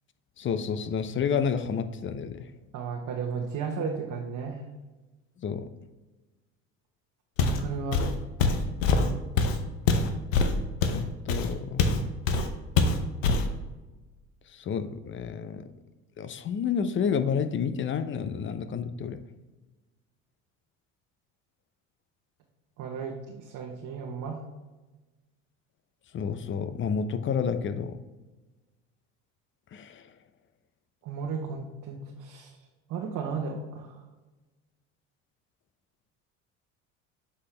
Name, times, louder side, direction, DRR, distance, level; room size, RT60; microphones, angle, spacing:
voice 1, 0.4-2.5 5.4-5.7 10.9-12.0 14.5-15.7 16.2-19.2 26.1-28.0 29.7-30.0, left 6 dB, 30° left, 11 dB, 0.6 m, -30 dB
voice 2, 2.7-4.6 7.4-8.1 22.8-24.4 31.0-32.5 32.9-34.0, right 5 dB, 55° right, 0 dB, 1.0 m, -34 dB
Walk footsteps, 7.4-7.7 7.9-12.0 12.3-12.5 12.8-13.5, left 4 dB, 90° left, 0.8 m, -24 dB
7.4 x 4.3 x 3.3 m, 1.2 s
hypercardioid pair, 80°, 37 cm